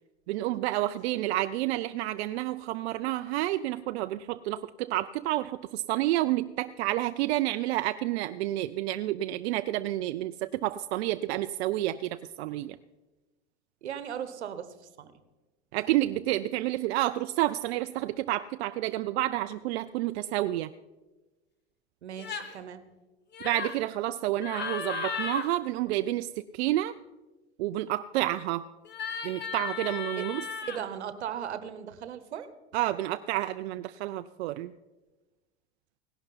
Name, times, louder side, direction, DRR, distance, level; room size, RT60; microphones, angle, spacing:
voice 1, 0.3-12.8 15.7-20.7 23.4-26.9 27.6-28.6 29.2-30.4 32.7-34.7, right 15 dB, 70° right, 11 dB, 0.5 m, -29 dB
voice 2, 13.8-15.1 22.0-22.8 30.2-30.3 30.6-32.5, right 9 dB, 85° right, 12 dB, 1.1 m, -37 dB
sound 1, 22.2-22.6 23.3-23.8 24.4-25.5 28.8-30.8, left 6 dB, 30° left, 1.5 m, -35 dB
17.5 x 11.0 x 4.0 m, 1.2 s
hypercardioid pair, 90°, 33 cm